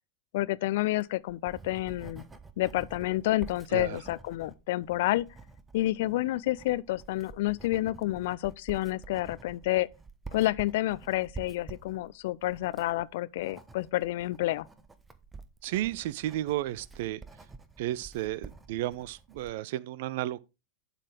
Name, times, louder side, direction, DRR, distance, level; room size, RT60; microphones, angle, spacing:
voice 1, 0.3-2.2 2.6-5.3 5.7-9.9 10.3-14.7, left 16 dB, 50° left, 0.4 m, -29 dB
Writing, 0.8-19.6, right 4 dB, 10° right, 0.9 m, -49 dB
voice 2, 15.6-17.2 17.8-20.4, right 14 dB, 50° right, 0.4 m, -33 dB
11.5 x 4.1 x 4.7 m
figure-of-eight pair, 90°, 0 cm